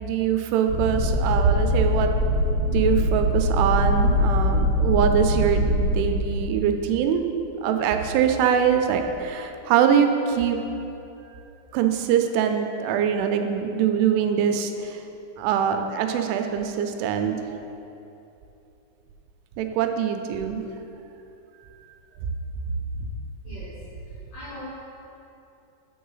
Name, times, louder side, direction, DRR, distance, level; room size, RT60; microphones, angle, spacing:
voice 1, 0.0-2.1 2.7-10.6 11.7-15.0 15.4-17.5 19.6-20.6, right 8 dB, 90° right, 6 dB, 3.0 m, -23 dB
sound 1, 0.7-5.9, equal, 60° right, 1.4 m, -22 dB
voice 2, 24.3-24.6, left 1 dB, 70° left, -9 dB, 1.8 m, -40 dB
8.8 x 4.7 x 5.5 m, 2.9 s
omnidirectional pair, 5.4 m